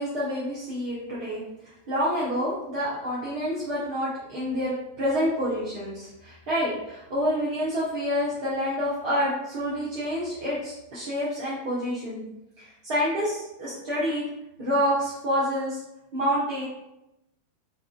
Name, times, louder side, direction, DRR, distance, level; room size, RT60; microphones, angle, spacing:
voice 1, 0.0-1.4 1.9-12.2 12.6-14.2 14.6-15.8 16.1-16.6, equal, 50° right, -8 dB, 1.1 m, -28 dB
6.0 x 2.7 x 2.4 m, 0.91 s
figure-of-eight pair, 90°, 0 cm